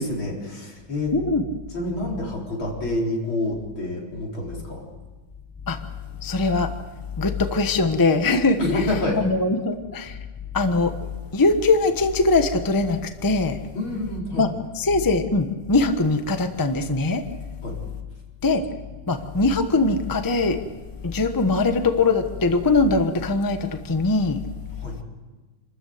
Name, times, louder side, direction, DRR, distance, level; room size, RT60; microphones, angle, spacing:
voice 1, 0.0-1.1 1.7-4.9 8.6-9.2 13.7-14.4 17.6-17.8 24.8-25.0, left 2 dB, 85° left, -2 dB, 5.2 m, -28 dB
voice 2, 1.1-1.4 5.7-5.8 6.2-6.7 7.2-8.9 9.2-10.2 10.5-11.0 11.3-13.6 14.4-14.5 14.7-17.3 18.4-18.7 19.1-20.6 21.0-24.4, left 3 dB, 15° left, 7 dB, 0.8 m, -21 dB
27.0 x 13.5 x 7.9 m, 1.3 s
omnidirectional pair, 2.2 m